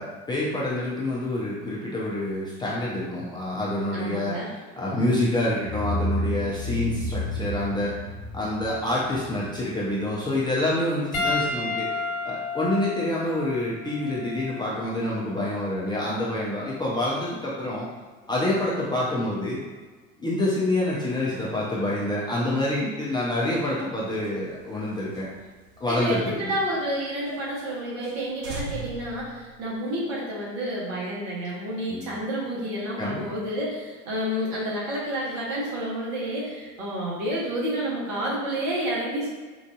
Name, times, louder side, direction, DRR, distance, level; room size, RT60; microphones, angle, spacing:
voice 1, 0.0-4.4 4.8-8.0 8.3-11.9 12.2-17.9 18.3-19.6 20.2-25.3 25.8-26.5 31.9-32.1 33.0-33.4, left 1 dB, 10° left, -6 dB, 0.5 m, -27 dB
voice 2, 3.9-4.5 25.9-39.3, right 1 dB, 55° right, -5 dB, 1.2 m, -30 dB
sound 1, 5.6-10.2, left 1 dB, 40° left, 0.9 m, -31 dB
Piano, 11.1-15.8 16.7-16.9 18.9-19.0, left 3 dB, 85° left, 0.6 m, -32 dB
sound 2, 24.1-26.9 27.3-27.4 27.7-27.8 28.0-28.2 28.4-30.1, right 3 dB, 75° right, 0.7 m, -40 dB
3.8 x 2.5 x 2.3 m, 1.4 s
figure-of-eight pair, 65°, 40 cm